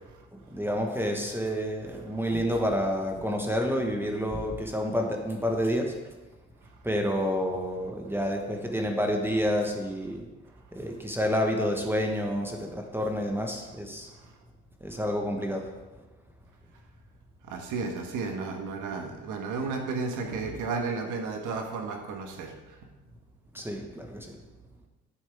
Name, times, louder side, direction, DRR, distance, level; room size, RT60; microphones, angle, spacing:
voice 1, 0.5-5.9 6.8-10.3 10.7-14.1 14.8-15.6 23.5-24.3, equal, 5° right, 2 dB, 1.2 m, -29 dB
voice 2, 2.0-2.4 6.6-6.7 10.8-10.9 13.6-13.7 14.2-14.4 17.4-22.8, right 4 dB, 90° right, 3 dB, 1.3 m, -34 dB
9.2 x 7.0 x 3.5 m, 1.1 s
cardioid pair, 90°, 30 cm